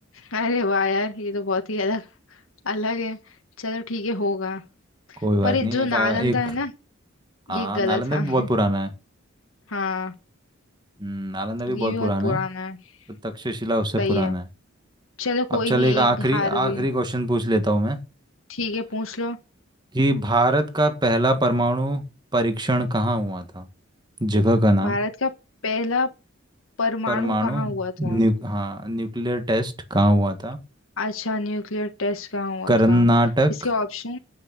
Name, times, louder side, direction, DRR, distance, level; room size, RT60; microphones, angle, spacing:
voice 1, 0.1-2.1 2.6-4.6 5.1-6.7 7.5-8.5 9.7-10.1 11.7-12.8 14.0-14.3 15.2-16.9 18.5-19.4 24.8-25.3 25.6-26.1 26.8-28.2 31.0-33.0 33.6-34.2, left 3 dB, 85° left, 1.5 m, -26 dB
voice 2, 5.2-6.4 7.5-8.9 11.0-12.4 13.2-14.5 15.7-18.0 19.9-22.0 22.3-23.7 24.2-25.0 27.1-30.6 32.7-33.5, right 1 dB, 20° right, 1.8 m, -22 dB
9.8 x 8.8 x 6.9 m
head